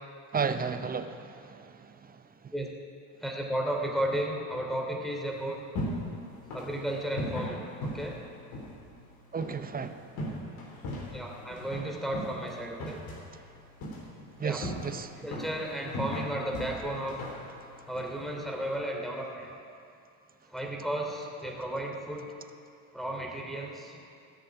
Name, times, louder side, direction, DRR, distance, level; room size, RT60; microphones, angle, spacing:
voice 1, 0.3-1.9 2.4-2.5 9.3-10.4 14.4-15.1, right 5 dB, 20° right, 10 dB, 0.8 m, -33 dB
voice 2, 3.2-5.6 6.5-8.2 11.1-13.0 14.4-14.6 15.2-17.2 17.9-19.5 20.5-22.3 22.9-24.0, right 1 dB, ahead, 0 dB, 2.9 m, -34 dB
sound 1, 5.3-18.8, left 1 dB, 60° left, 3.9 m, -39 dB
17.0 x 6.7 x 8.9 m, 2.5 s
supercardioid pair, 90°, 41 cm